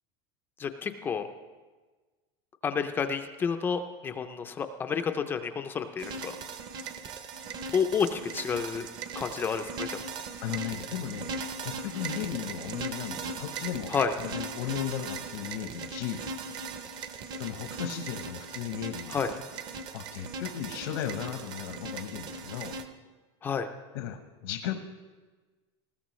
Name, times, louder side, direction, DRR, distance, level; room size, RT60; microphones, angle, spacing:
voice 1, 0.6-1.3 2.6-6.4 7.7-8.9 9.1-10.0 13.9-14.1 19.1-19.3 23.4-23.7, left 6 dB, 15° left, 7 dB, 0.4 m, -30 dB
sound 1, 6.0-22.8, right 4 dB, 30° right, 0.6 m, -39 dB
voice 2, 10.4-11.3 11.6-13.9 14.2-16.2 17.4-19.2 19.9-22.8 23.9-24.7, left 10 dB, 80° left, 5 dB, 1.0 m, -36 dB
20.0 x 14.5 x 3.1 m, 1.3 s
supercardioid pair, 175°, 14 cm